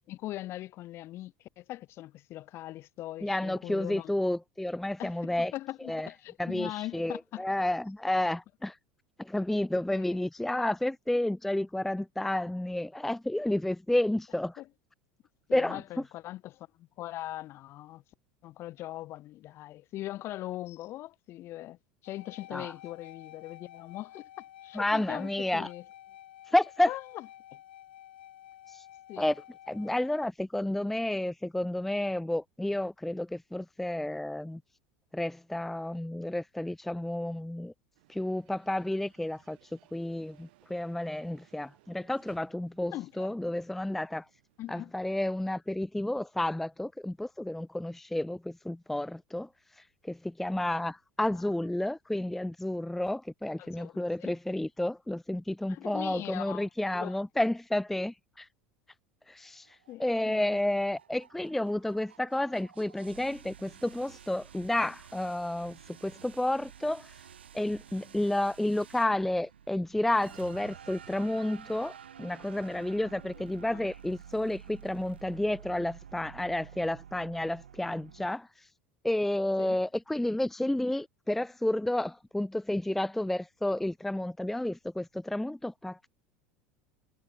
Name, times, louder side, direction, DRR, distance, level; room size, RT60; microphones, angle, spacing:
voice 1, 0.1-4.1 5.0-7.4 9.9-10.2 14.6-14.7 15.5-18.0 18.4-21.8 22.0-25.8 26.9-27.3 29.1-29.3 42.9-43.3 44.6-44.9 53.6-54.3 55.7-56.7 56.9-57.2 59.9-60.5 73.4-73.9 79.6-79.8, left 15 dB, 50° left, 1.3 m, -41 dB
voice 2, 3.2-5.5 5.9-6.1 6.4-8.8 9.2-14.6 15.5-15.8 22.5-22.7 24.8-25.7 26.5-26.9 28.7-28.8 29.2-29.4 29.7-34.6 35.1-37.7 38.1-39.6 39.9-44.3 44.7-49.5 50.0-58.5 59.3-67.1 67.5-78.5 79.0-86.1, left 1 dB, 5° left, 0.4 m, -31 dB
sound 1, 22.0-30.3, left 12 dB, 75° left, 1.7 m, -51 dB
sound 2, 37.9-45.0, right 20 dB, 70° right, 3.8 m, -64 dB
sound 3, 59.4-78.3, right 8 dB, 85° right, 4.0 m, -51 dB
hypercardioid pair, 80°, 6 cm